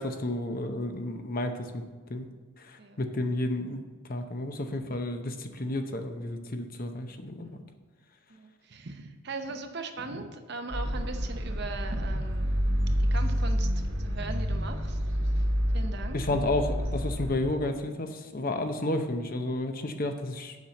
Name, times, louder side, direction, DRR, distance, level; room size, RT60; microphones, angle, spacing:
voice 1, 0.0-1.8 2.1-2.3 2.6-3.8 4.1-7.5 16.1-20.6, left 1 dB, 45° left, 6 dB, 0.8 m, -31 dB
voice 2, 7.4-7.8 8.3-12.6 13.1-13.7 14.0-15.0 15.7-16.4, right 3 dB, 55° right, 6 dB, 0.8 m, -39 dB
sound 1, 10.7-17.4, equal, 85° right, 2.1 m, -28 dB
7.4 x 5.7 x 7.6 m, 1.4 s
head